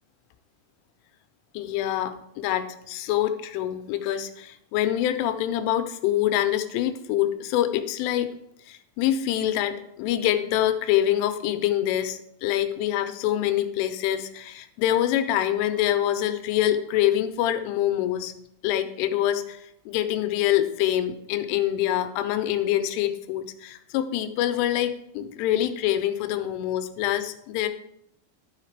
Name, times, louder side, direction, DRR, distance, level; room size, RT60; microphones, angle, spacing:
voice 1, 1.5-8.4 8.7-18.3 18.6-27.7, left 12 dB, 90° left, 8 dB, 3.2 m, -25 dB
12.5 x 5.7 x 4.7 m, 0.75 s
omnidirectional pair, 5.6 m